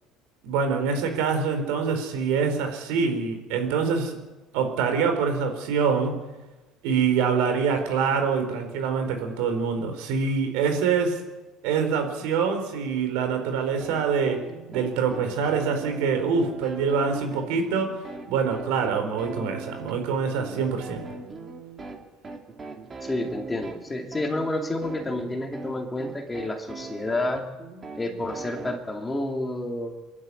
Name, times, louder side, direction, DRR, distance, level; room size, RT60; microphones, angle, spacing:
voice 1, 0.4-4.2 4.5-6.2 6.8-11.2 11.6-14.4 14.7-18.0 18.3-21.0, right 5 dB, 85° right, 6 dB, 4.5 m, -25 dB
sound 1, 13.8-28.8, right 4 dB, 25° right, 2.5 m, -40 dB
voice 2, 23.0-27.5 28.0-29.9, left 2 dB, 15° left, 3 dB, 2.5 m, -29 dB
23.5 x 12.0 x 9.8 m, 1.2 s
cardioid pair, 140°, 0 cm